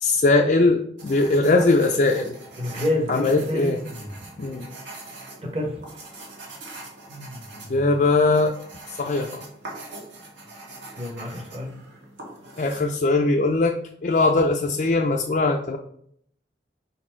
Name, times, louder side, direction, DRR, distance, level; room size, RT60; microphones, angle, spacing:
voice 1, 0.0-2.4 3.1-3.8 4.4-4.7 7.7-8.5 9.0-9.4 12.6-13.8 14.0-15.8, left 3 dB, 45° left, 2 dB, 0.4 m, -20 dB
sound 1, 1.0-12.8, right 2 dB, 85° right, 1.8 m, -42 dB
voice 2, 2.6-3.8 5.5-6.0 11.0-11.7, left 1 dB, 30° right, 2 dB, 1.1 m, -28 dB
sound 2, 3.6-4.5 7.1-8.3, equal, 60° right, 1.4 m, -40 dB
5.3 x 4.2 x 4.4 m, 0.69 s
head